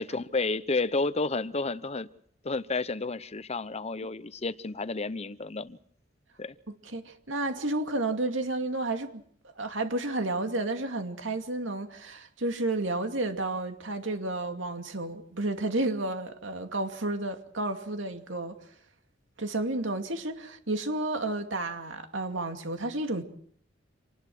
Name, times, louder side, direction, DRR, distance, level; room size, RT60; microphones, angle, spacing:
voice 1, 0.0-2.1 2.4-5.8 6.4-6.5, left 3 dB, 35° left, 0.9 m, -31 dB
voice 2, 6.7-9.2 9.6-18.6 19.4-23.2, right 2 dB, 85° right, 2.5 m, -31 dB
27.0 x 19.5 x 6.2 m
head